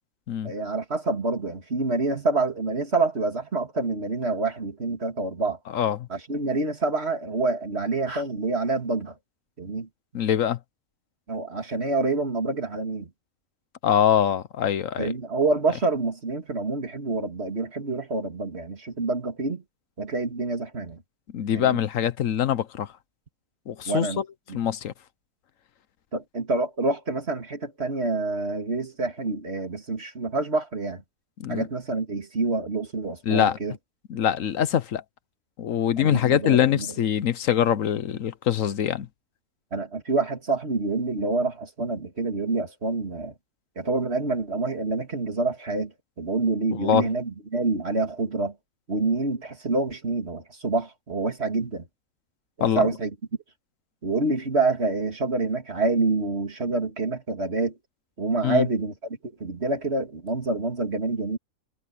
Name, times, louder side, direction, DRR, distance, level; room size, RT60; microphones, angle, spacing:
voice 1, 0.4-5.6 6.1-9.2 9.6-9.9 11.3-13.1 15.0-19.6 20.0-21.0 21.5-21.8 23.8-24.2 24.5-24.6 26.1-31.0 31.5-33.8 36.0-36.9 39.7-43.3 43.8-48.5 48.9-51.9 52.6-53.1 54.0-57.8 58.2-61.4, right 3 dB, 50° right, 2.9 m, -27 dB
voice 2, 10.1-10.6 13.8-15.1 21.3-22.9 23.7-24.2 24.5-24.9 31.4-31.6 33.3-33.6 34.1-35.0 35.6-39.1 46.8-47.1 52.6-52.9 58.4-58.7, left 9 dB, 70° left, 1.2 m, -23 dB
omnidirectional pair, 1.4 m